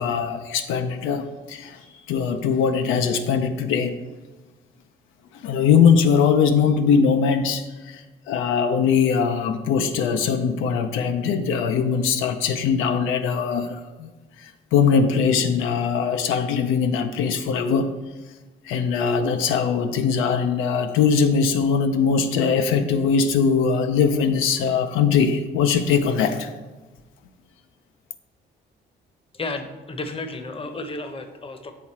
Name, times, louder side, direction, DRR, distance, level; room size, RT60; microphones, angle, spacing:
voice 1, 0.0-1.8 2.1-3.9 5.4-14.1 14.4-18.0 18.6-26.5, left 6 dB, 90° left, 7 dB, 0.5 m, -21 dB
voice 2, 29.3-31.7, left 2 dB, 30° left, 7 dB, 0.7 m, -32 dB
7.5 x 3.6 x 4.2 m, 1.2 s
cardioid pair, 90°, 20 cm